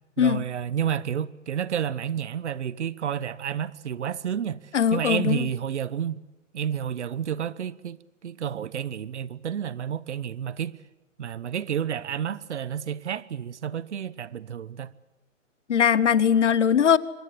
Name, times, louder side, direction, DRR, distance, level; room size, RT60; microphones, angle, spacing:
voice 1, 0.2-4.6 4.9-6.2 6.5-10.7 11.2-14.9, right 8 dB, 60° right, 1.0 m, -30 dB
voice 2, 4.7-5.5 15.7-17.0, left 8 dB, 65° left, 1.1 m, -20 dB
25.5 x 22.5 x 8.4 m
hypercardioid pair, 175°, 39 cm